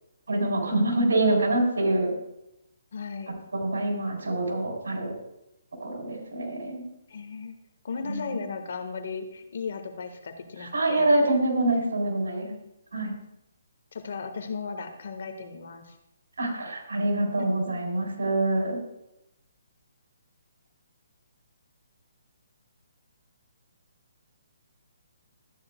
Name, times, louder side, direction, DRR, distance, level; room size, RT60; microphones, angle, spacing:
voice 1, 0.3-2.1 3.5-5.1 5.8-6.8 8.0-8.5 10.7-12.4 12.9-13.1 16.4-18.8, right 2 dB, 90° right, 0 dB, 3.4 m, -25 dB
voice 2, 2.9-3.3 7.1-7.5 7.8-11.1 12.5-12.6 12.9-13.2 13.9-15.9 17.4-17.5, left 5 dB, 60° left, 7 dB, 1.3 m, -36 dB
13.0 x 9.5 x 2.2 m, 0.87 s
hypercardioid pair, 160°, 0 cm